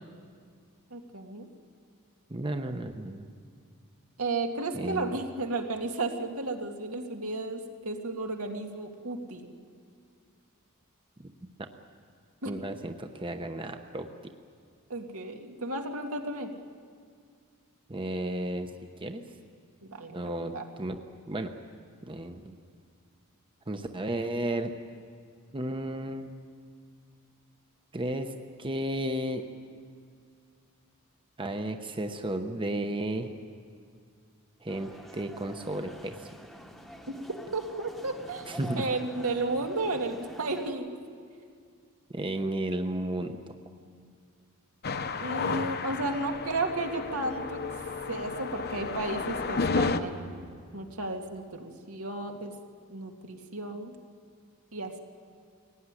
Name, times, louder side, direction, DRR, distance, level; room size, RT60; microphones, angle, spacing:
voice 1, 0.9-1.5 4.2-9.5 12.4-12.5 14.9-16.5 19.9-20.6 37.1-37.2 37.5-41.0 45.2-47.6 48.1-50.4 50.7-52.5 52.9-54.0 54.7-55.0, right 2 dB, 75° right, 3 dB, 2.2 m, -33 dB
voice 2, 2.3-3.3 4.7-5.2 11.2-11.3 11.6-11.7 12.5-14.1 17.9-18.7 19.0-19.2 20.1-21.0 21.3-21.5 22.0-22.6 23.7-24.7 25.5-26.3 27.9-29.5 31.4-33.3 34.6-36.3 38.5-38.8 42.1-43.5, right 1 dB, 25° right, 6 dB, 0.9 m, -33 dB
sound 1, 34.7-40.7, equal, ahead, 1.1 m, -47 dB
sound 2, 44.8-50.0, left 4 dB, 50° left, 1.0 m, -32 dB
22.5 x 18.0 x 9.8 m, 2.2 s
head